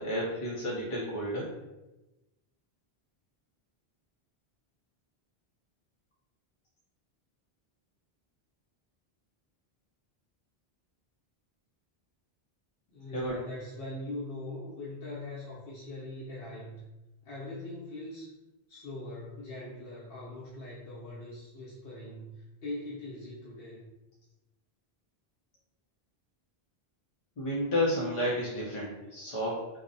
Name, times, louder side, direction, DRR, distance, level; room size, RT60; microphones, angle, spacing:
voice 1, 0.0-1.5 13.1-13.4 27.4-29.7, equal, 45° left, -5 dB, 0.4 m, -31 dB
voice 2, 12.9-16.8 17.2-18.3 18.7-23.9, left 1 dB, 80° left, -7 dB, 0.8 m, -41 dB
2.7 x 2.0 x 2.5 m, 1.0 s
omnidirectional pair, 1.0 m